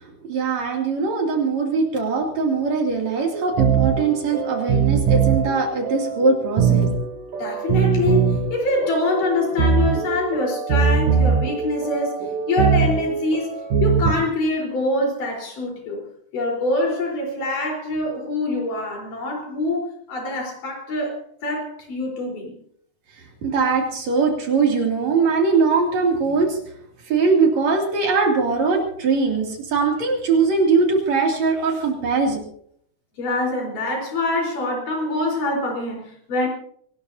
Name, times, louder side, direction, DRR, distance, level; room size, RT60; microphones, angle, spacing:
voice 1, 0.3-6.9 23.4-26.6 27.1-32.4, right 4 dB, 60° right, 1 dB, 3.9 m, -21 dB
sound 1, 3.3-14.1, right 6 dB, 85° right, 3.8 m, -21 dB
voice 2, 7.4-12.2 12.5-13.5 13.8-16.0 16.3-22.5 33.2-36.5, left 2 dB, 90° left, 0 dB, 5.8 m, -24 dB
24.5 x 18.5 x 2.8 m, 0.65 s
omnidirectional pair, 3.6 m